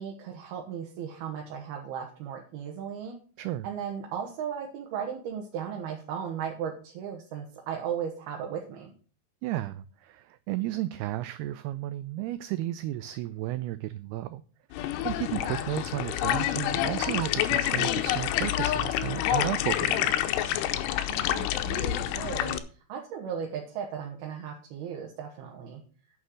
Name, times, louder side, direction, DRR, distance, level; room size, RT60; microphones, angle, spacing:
voice 1, 0.0-3.2 3.6-8.9 21.0-22.6 22.9-25.8, right 8 dB, 70° right, 0 dB, 3.1 m, -36 dB
voice 2, 9.4-14.4 14.7-20.3, right 14 dB, 85° right, 13 dB, 2.3 m, -33 dB
sound 1, 14.7-22.6, left 12 dB, 80° left, 2.7 m, -28 dB
9.4 x 6.4 x 6.4 m, 0.40 s
omnidirectional pair, 5.1 m